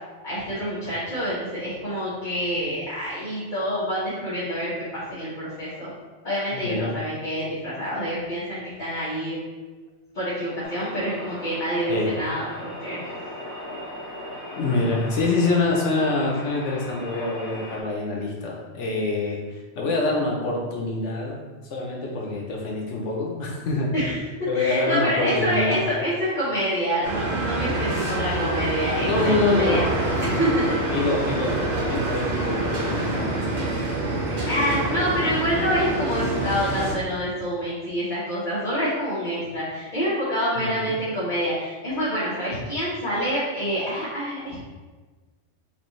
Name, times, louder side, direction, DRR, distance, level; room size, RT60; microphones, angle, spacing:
voice 1, 0.2-5.9 6.2-9.4 10.1-13.1 23.9-24.2 24.5-29.8 30.2-30.9 34.1-44.6, equal, 40° left, -11 dB, 1.3 m, -27 dB
voice 2, 6.5-6.9 11.9-12.2 14.6-21.4 21.6-23.9 24.5-25.8 29.0-29.8 30.9-33.6 34.6-35.1 40.6-41.0, left 3 dB, 80° left, -1 dB, 1.1 m, -26 dB
sound 1, 10.6-17.8, equal, 60° left, 1.5 m, -38 dB
sound 2, 27.0-36.9, right 2 dB, 40° right, 1.0 m, -26 dB
6.5 x 2.6 x 3.1 m, 1.3 s
omnidirectional pair, 1.2 m